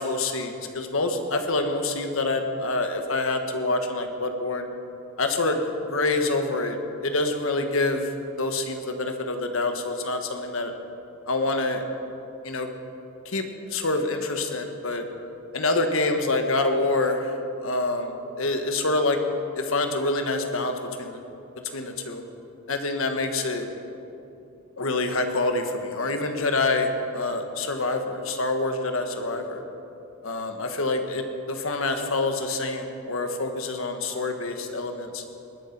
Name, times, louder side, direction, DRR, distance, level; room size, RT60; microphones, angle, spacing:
voice 1, 0.0-4.7 5.2-5.6 5.9-6.8 7.0-10.7 11.3-11.8 12.4-12.7 13.2-13.4 13.7-15.0 15.5-17.4 17.6-19.2 19.5-21.2 21.5-22.2 22.7-23.7 24.8-29.6 30.2-35.2, left 2 dB, 70° left, 6 dB, 1.4 m, -26 dB
20.0 x 9.4 x 5.9 m, 2.7 s
head